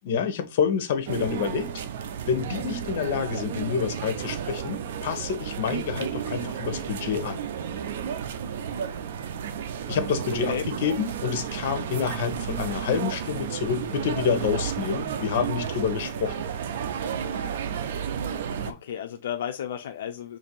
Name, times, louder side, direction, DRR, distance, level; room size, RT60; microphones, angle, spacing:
voice 1, 0.0-1.7 2.3-7.4 9.9-16.5, left 7 dB, 65° left, 0.8 m, -28 dB
sound 1, 1.1-18.7, right 8 dB, 80° right, 0.5 m, -32 dB
voice 2, 18.6-20.4, left 9 dB, 90° left, 0.3 m, -33 dB
2.9 x 2.6 x 4.3 m
supercardioid pair, 155°, 0 cm